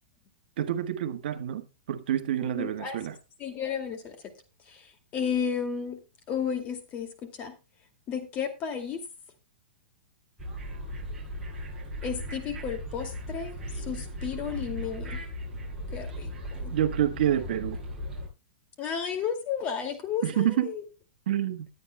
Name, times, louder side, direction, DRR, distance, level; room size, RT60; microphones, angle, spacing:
voice 1, 0.6-3.1 16.7-17.8 20.2-20.7 21.3-21.7, right 11 dB, 60° right, 1.3 m, -28 dB
voice 2, 2.4-3.0 3.4-4.2 4.7-6.0 6.3-7.6 8.1-9.0 12.0-15.2 15.9-16.8 18.8-20.8, left 7 dB, 25° left, 2.2 m, -33 dB
sound 1, 10.4-18.3, equal, 10° right, 8.0 m, -37 dB
20.5 x 8.8 x 2.2 m
supercardioid pair, 160°, 6 cm